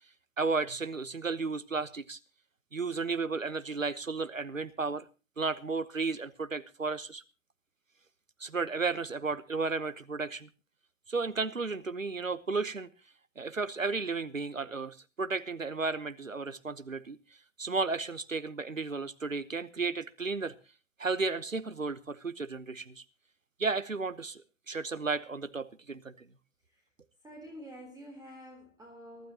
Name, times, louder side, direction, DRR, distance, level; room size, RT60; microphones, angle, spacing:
voice 1, 0.4-2.2 2.7-5.1 5.4-7.2 8.4-10.5 11.1-12.9 13.4-17.2 17.6-20.5 21.0-23.0 23.6-24.4 24.7-26.3, right 4 dB, 90° right, 13 dB, 1.0 m, -33 dB
voice 2, 27.2-29.3, equal, 10° right, 1 dB, 3.7 m, -48 dB
24.0 x 12.5 x 2.9 m, 0.31 s
figure-of-eight pair, 100°, 38 cm